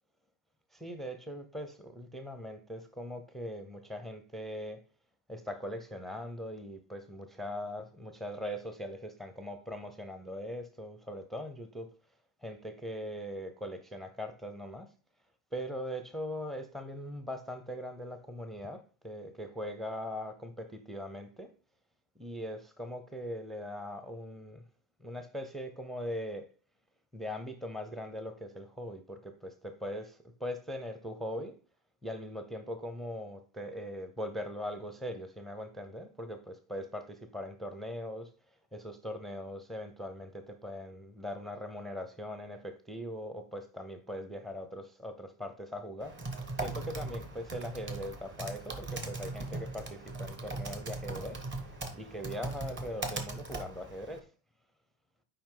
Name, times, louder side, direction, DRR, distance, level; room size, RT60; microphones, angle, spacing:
voice 1, 0.7-4.8 5.3-11.9 12.4-14.9 15.5-21.5 22.2-24.6 25.0-26.5 27.1-31.6 32.0-38.3 38.7-46.2 46.6-51.4 52.0-54.3, equal, ahead, 0.6 m, -40 dB
Typing, 46.0-54.2, right 2 dB, 25° right, 1.1 m, -39 dB
7.6 x 5.0 x 3.7 m
cardioid pair, 140°, 44 cm